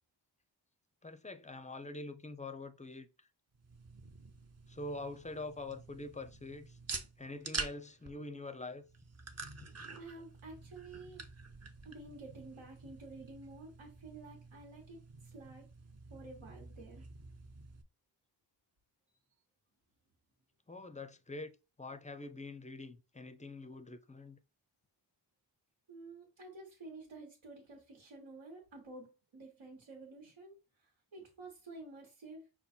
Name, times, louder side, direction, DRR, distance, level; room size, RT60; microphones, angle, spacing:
voice 1, 1.0-3.1 4.7-6.8 7.2-8.8 9.6-9.7 20.7-21.5 21.8-24.4, left 2 dB, 15° left, 0.4 m, -45 dB
sound 1, 3.5-17.8, right 4 dB, 35° right, 0.6 m, -48 dB
voice 2, 9.9-11.2 11.8-15.7 16.1-17.1 25.9-32.5, right 2 dB, 85° right, 1.3 m, -51 dB
5.4 x 2.3 x 4.3 m
wide cardioid pair, 90°, 47 cm